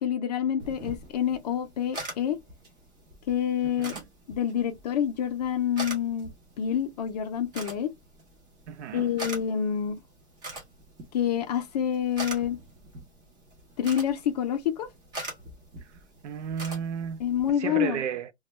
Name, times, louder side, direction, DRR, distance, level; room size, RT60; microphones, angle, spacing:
voice 1, 0.0-2.4 3.3-3.9 4.3-6.3 6.6-7.9 8.9-10.0 11.1-12.6 13.8-14.9 17.2-18.0, left 9 dB, 40° left, 0.4 m, -27 dB
sound 1, 0.6-17.5, right 1 dB, 10° right, 0.5 m, -43 dB
voice 2, 3.6-4.0 8.7-9.1 16.2-17.2 17.6-18.3, right 8 dB, 90° right, 0.6 m, -33 dB
3.0 x 2.2 x 3.0 m
hypercardioid pair, 160°, 34 cm